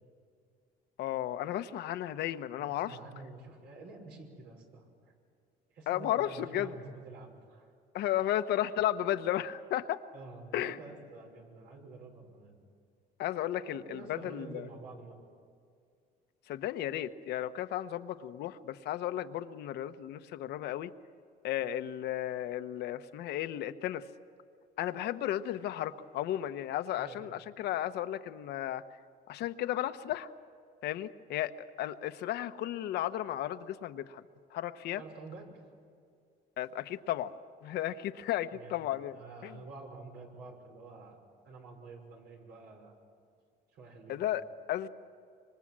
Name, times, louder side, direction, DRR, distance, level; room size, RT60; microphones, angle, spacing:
voice 1, 1.0-3.0 5.9-6.8 7.9-10.0 10.5-10.8 13.2-14.7 16.5-20.9 21.4-24.0 24.8-28.8 29.3-30.3 30.8-31.5 31.8-34.2 34.5-35.0 36.6-37.3 37.6-39.2 44.1-44.9, left 12 dB, 75° left, 10 dB, 1.0 m, -34 dB
voice 2, 2.7-5.2 5.7-7.7 10.1-12.6 13.7-15.2 27.0-27.4 34.9-35.5 38.5-41.2 41.4-43.0 43.7-44.4, right 3 dB, 80° right, 2 dB, 5.8 m, -49 dB
26.0 x 24.5 x 7.6 m, 2.3 s
cardioid pair, 110°, 17 cm